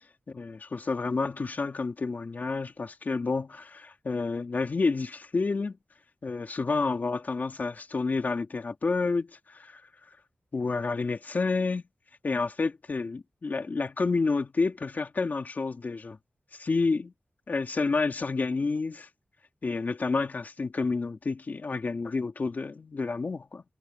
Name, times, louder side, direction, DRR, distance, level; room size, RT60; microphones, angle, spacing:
voice 1, 0.3-5.8 6.2-9.8 10.5-11.8 12.2-16.2 16.5-17.1 17.5-19.1 19.6-23.6, left 4 dB, 50° left, 2.9 m, -29 dB
wide cardioid pair, 95°, 4 cm